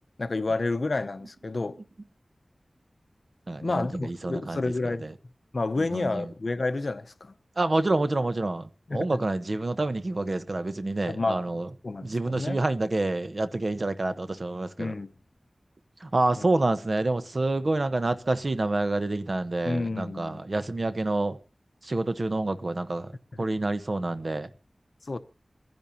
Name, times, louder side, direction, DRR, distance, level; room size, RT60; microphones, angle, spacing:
voice 1, 0.2-1.8 3.6-5.0 5.5-7.3 8.9-9.1 11.1-11.5 11.8-12.6 14.8-15.1 16.4-16.5 19.7-20.4 25.0-25.2, left 3 dB, 65° left, 0.8 m, -29 dB
voice 2, 3.5-5.1 5.8-6.3 7.6-11.7 12.0-14.9 16.0-21.4 21.8-23.1 23.4-24.5, right 2 dB, 50° right, 1.0 m, -28 dB
27.5 x 10.5 x 2.8 m
wide cardioid pair, 75°, 0 cm